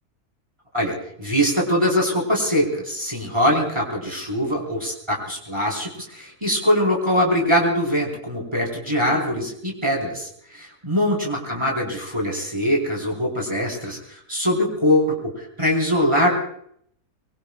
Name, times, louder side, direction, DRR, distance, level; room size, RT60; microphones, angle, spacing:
voice 1, 0.7-16.3, equal, 15° right, -2 dB, 4.4 m, -22 dB
24.5 x 23.5 x 2.4 m, 0.67 s
omnidirectional pair, 1.7 m